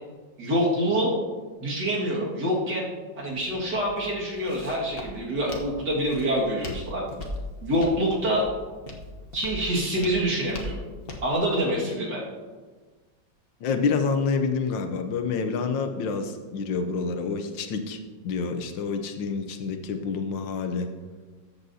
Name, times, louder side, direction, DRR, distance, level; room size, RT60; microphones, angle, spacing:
voice 1, 0.4-1.2 1.6-2.9 3.2-7.1 7.6-8.5 9.3-10.8 11.2-12.2, equal, 60° right, -4 dB, 2.5 m, -26 dB
Walk footsteps, 3.3-11.3, left 1 dB, 40° left, 1.0 m, -40 dB
voice 2, 13.6-20.9, left 5 dB, 80° left, 7 dB, 1.5 m, -28 dB
13.5 x 7.8 x 2.8 m, 1.4 s
omnidirectional pair, 2.0 m